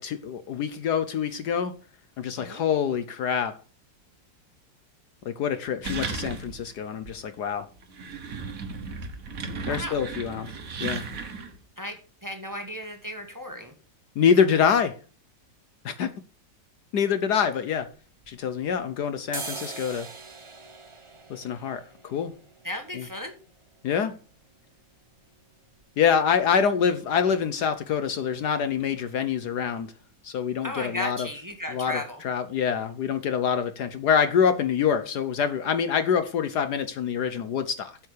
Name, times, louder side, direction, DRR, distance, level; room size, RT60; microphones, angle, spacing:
voice 1, 0.0-1.7 2.2-3.6 5.2-7.7 9.7-10.5 10.8-11.0 14.2-14.9 15.8-16.1 16.9-17.9 18.3-20.1 21.3-22.3 22.9-23.0 23.8-24.1 26.0-29.9 30.2-31.3 31.7-38.0, left 7 dB, 65° left, 1.3 m, -25 dB
sound 1, 5.8-6.7 7.0-7.1 7.8-11.6, right 4 dB, 50° right, 1.6 m, -35 dB
voice 2, 9.6-10.0 11.8-13.7 22.6-23.4 30.6-32.2, left 1 dB, 10° right, 1.5 m, -35 dB
sound 2, 17.8-18.8 19.2-26.9 27.2-27.3 27.5-28.1 28.4-28.6 28.9-29.1 29.4-30.1 30.5-30.6 31.1-31.2 31.5-31.6, right 4 dB, 25° right, 0.6 m, -44 dB
8.3 x 7.6 x 6.5 m
omnidirectional pair, 2.0 m